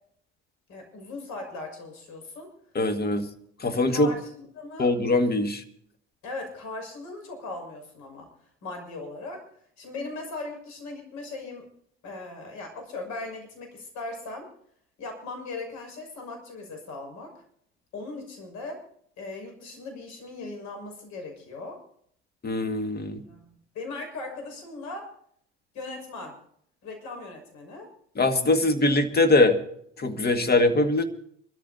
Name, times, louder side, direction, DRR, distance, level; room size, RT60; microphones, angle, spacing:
voice 1, 0.7-2.5 3.9-4.9 6.2-8.3 8.6-9.5 9.8-11.7 12.0-14.5 15.0-17.3 17.9-18.9 19.2-21.8 23.2-25.1 25.7-26.4 26.8-27.9, left 2 dB, 60° left, 3 dB, 6.3 m, -38 dB
voice 2, 2.8-3.3 3.6-4.1 4.8-5.6 22.4-23.2 28.2-29.6 30.0-31.0, left 2 dB, 30° left, 7 dB, 2.0 m, -22 dB
27.0 x 13.5 x 2.8 m, 0.67 s
hypercardioid pair, 65°, 32 cm